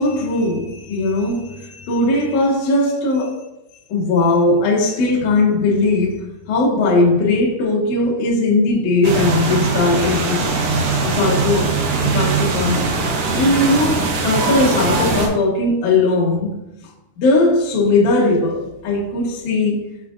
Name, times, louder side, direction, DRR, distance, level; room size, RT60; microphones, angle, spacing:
voice 1, 0.0-3.4 3.9-10.5 11.0-12.9 13.3-16.6 17.2-19.8, left 2 dB, 80° left, 1.7 m, -18 dB
sound 1, 9.0-15.3, right 4 dB, 85° right, 2.1 m, -20 dB
6.4 x 3.5 x 2.4 m
omnidirectional pair, 5.0 m